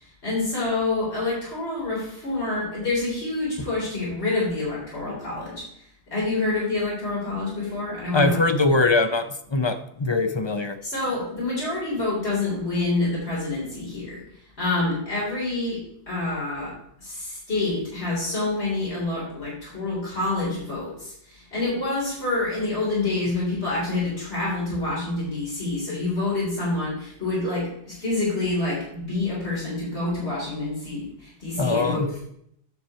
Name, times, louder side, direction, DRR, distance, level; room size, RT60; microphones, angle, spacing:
voice 1, 0.2-5.6 6.1-8.4 10.8-14.2 14.6-32.2, left 2 dB, 75° left, -6 dB, 4.0 m, -27 dB
voice 2, 8.1-10.8 31.6-32.1, left 3 dB, 30° left, 7 dB, 0.6 m, -22 dB
9.9 x 6.1 x 4.3 m, 0.71 s
omnidirectional pair, 1.1 m